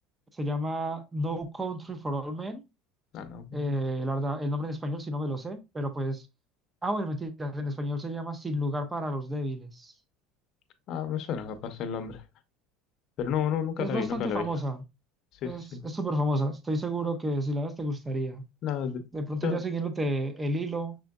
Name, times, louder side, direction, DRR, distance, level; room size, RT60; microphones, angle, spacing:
voice 1, 0.3-2.6 3.5-6.3 6.8-9.9 13.8-14.8 15.4-18.4 19.1-21.0, right 1 dB, 10° right, 0.5 m, -31 dB
voice 2, 3.1-3.8 10.9-12.2 13.2-14.5 15.4-15.8 18.6-19.0 19.4-19.6, left 8 dB, 40° left, 0.6 m, -31 dB
6.0 x 3.7 x 2.3 m
cardioid pair, 170°, 0 cm